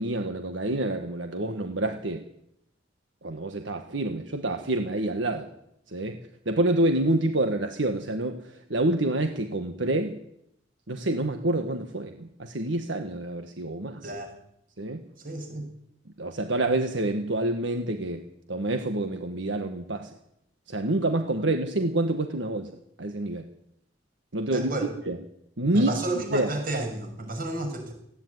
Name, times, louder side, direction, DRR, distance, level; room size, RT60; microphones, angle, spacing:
voice 1, 0.0-2.2 3.2-5.5 5.9-6.2 6.4-10.2 10.9-14.1 14.8-15.0 16.2-18.2 18.5-20.1 20.7-22.7 23.0-23.4 24.3-24.7 25.1-25.2 25.6-25.9 26.3-26.5, right 1 dB, 80° right, 7 dB, 1.6 m, -27 dB
voice 2, 15.2-15.7 24.5-24.9 25.7-27.9, right 2 dB, 50° right, 4 dB, 6.2 m, -31 dB
18.5 x 16.0 x 9.6 m, 0.76 s
head